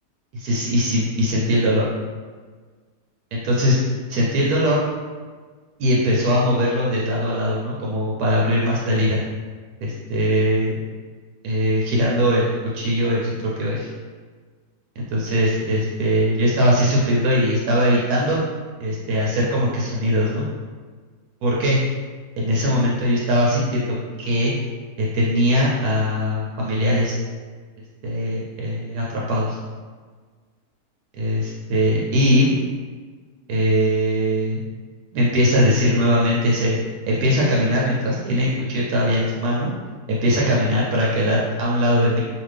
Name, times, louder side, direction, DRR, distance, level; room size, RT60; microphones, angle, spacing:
voice 1, 0.3-1.9 3.3-3.8 4.1-4.8 5.8-9.2 9.8-10.7 11.4-13.9 15.0-18.4 18.8-20.4 21.4-21.8 22.4-24.5 25.0-27.2 28.0-29.6 31.2-32.5 33.5-34.6 35.1-36.8 37.1-39.7 40.1-42.2, equal, 75° right, -4 dB, 1.1 m, -20 dB
2.7 x 2.5 x 3.2 m, 1.5 s
omnidirectional pair, 1.7 m